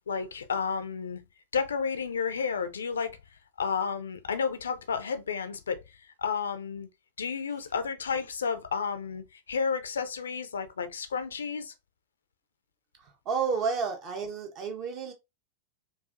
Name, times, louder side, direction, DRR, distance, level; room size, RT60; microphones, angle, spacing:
voice 1, 0.1-1.2 1.5-3.2 3.6-6.9 7.2-11.7, left 6 dB, 70° left, 0.5 m, -31 dB
voice 2, 13.0-15.1, right 5 dB, 35° right, 1.1 m, -31 dB
4.7 x 2.7 x 2.5 m
figure-of-eight pair, 90°, 0 cm